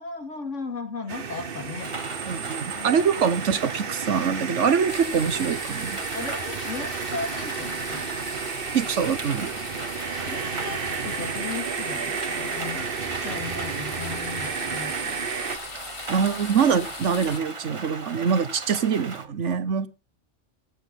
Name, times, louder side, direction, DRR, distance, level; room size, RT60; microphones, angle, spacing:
voice 1, 0.0-1.9 2.7-3.1 6.1-8.5 10.3-12.9 13.2-15.3, left 4 dB, 75° left, 2.8 m, -36 dB
sound 1, 1.1-15.6, right 6 dB, 50° right, 1.2 m, -32 dB
Rain, 1.8-19.3, right 3 dB, 25° right, 1.2 m, -39 dB
voice 2, 2.3-6.0 8.7-9.5 16.1-19.9, right 6 dB, 75° right, 1.4 m, -24 dB
sound 2, 4.9-17.4, left 5 dB, 50° left, 1.3 m, -40 dB
16.0 x 10.5 x 4.1 m
omnidirectional pair, 1.3 m